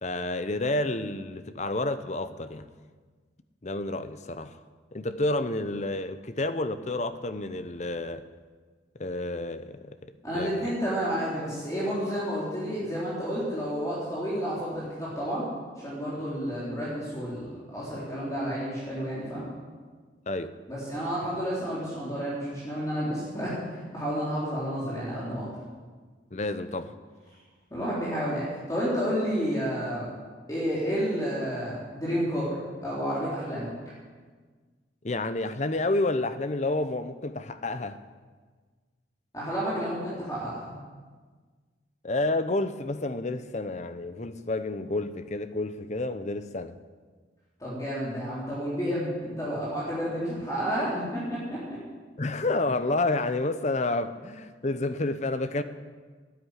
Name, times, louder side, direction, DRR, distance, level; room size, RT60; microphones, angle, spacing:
voice 1, 0.0-2.7 3.6-4.6 4.9-8.2 9.0-10.7 20.3-20.5 26.3-26.9 35.0-38.0 42.0-46.7 52.2-55.6, left 2 dB, 40° left, 0.8 m, -30 dB
voice 2, 10.2-15.5 15.8-19.4 20.7-23.6 23.9-25.5 27.7-30.1 30.5-32.6 32.8-33.7 39.3-40.7 47.6-51.6, equal, 20° left, 3.7 m, -30 dB
13.0 x 9.6 x 9.8 m
head